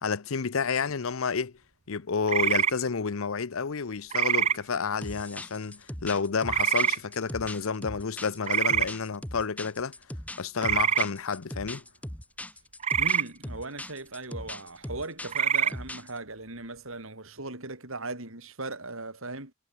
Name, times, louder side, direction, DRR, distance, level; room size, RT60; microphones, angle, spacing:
voice 1, 0.0-1.5 1.9-9.9 10.4-11.8, left 5 dB, 70° left, 0.7 m, -30 dB
sound 1, 2.3-2.7 4.1-4.6 6.5-7.0 8.4-8.9 10.6-11.1 12.8-13.2 15.3-15.7, right 8 dB, 30° right, 0.4 m, -24 dB
sound 2, 5.0-16.2, left 1 dB, 5° left, 1.5 m, -40 dB
voice 2, 13.0-19.5, right 2 dB, 70° right, 5.1 m, -38 dB
head